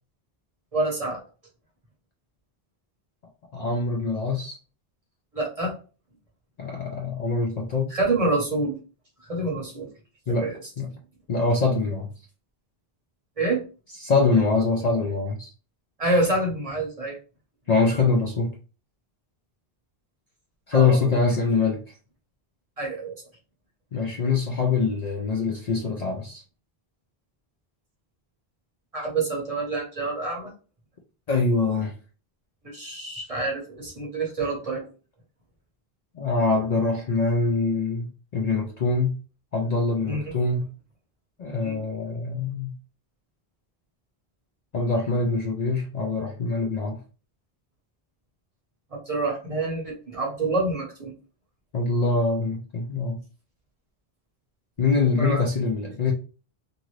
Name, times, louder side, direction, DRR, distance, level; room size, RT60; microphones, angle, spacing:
voice 1, 0.7-1.2 5.3-5.7 7.9-8.8 9.2-9.9 10.3-10.6 13.4-13.6 16.0-17.2 20.7-21.2 22.8-23.1 28.9-30.5 32.6-34.9 40.1-40.2 41.6-41.8 48.9-51.1 55.2-55.5, right 2 dB, 40° right, -1 dB, 0.8 m, -27 dB
voice 2, 3.5-4.6 6.6-7.9 10.3-10.5 10.8-10.9 11.3-12.1 14.0-15.5 17.7-18.5 20.7-21.8 23.9-26.4 31.3-31.9 36.1-38.1 38.3-39.2 39.5-40.6 41.4-42.7 44.7-47.0 51.7-53.2 54.8-56.1, left 4 dB, 50° left, 0 dB, 0.5 m, -24 dB
2.7 x 2.5 x 3.0 m, 0.36 s
omnidirectional pair, 1.0 m